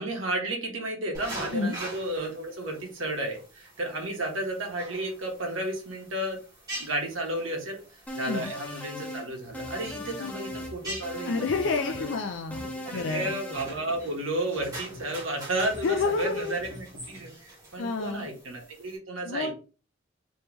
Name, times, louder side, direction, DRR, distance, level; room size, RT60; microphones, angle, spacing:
voice 1, 0.0-6.4 6.8-7.8 8.1-11.3 11.8-12.1 12.9-19.5, right 1 dB, 75° right, 1 dB, 1.3 m, -32 dB
sound 1, 1.1-19.0, right 1 dB, 20° right, 1.7 m, -45 dB
sound 2, 8.1-9.3 9.5-10.7 11.0-12.2 12.5-13.7, left 1 dB, 5° left, 0.5 m, -38 dB
sound 3, 9.2-17.3, equal, 45° right, 1.6 m, -47 dB
voice 2, 11.2-13.3 15.8-16.6 17.8-18.3 19.3-19.6, left 4 dB, 60° left, 6 dB, 0.4 m, -29 dB
3.2 x 3.0 x 3.3 m, 0.35 s
head